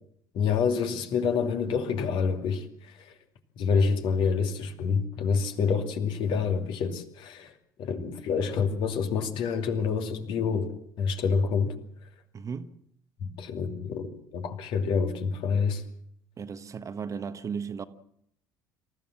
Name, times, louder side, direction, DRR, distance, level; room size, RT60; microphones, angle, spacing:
voice 1, 0.3-3.1 3.6-7.5 7.8-11.8 13.2-15.8, left 5 dB, 50° left, 2.6 m, -27 dB
voice 2, 12.3-12.7 16.4-17.8, right 6 dB, 30° right, 1.3 m, -35 dB
26.5 x 15.0 x 7.5 m
figure-of-eight pair, 60°, 10 cm